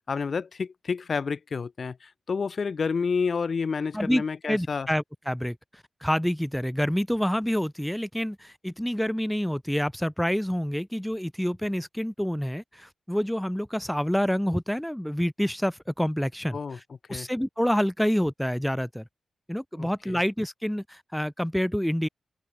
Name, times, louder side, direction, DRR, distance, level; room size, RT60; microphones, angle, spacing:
voice 1, 0.1-4.9 16.5-16.8 17.1-17.3 19.7-20.2, left 5 dB, 55° left, 3.5 m, -29 dB
voice 2, 3.9-16.6 17.1-19.0 19.5-22.1, equal, 5° left, 2.5 m, -27 dB
cardioid pair, 60°, 0 cm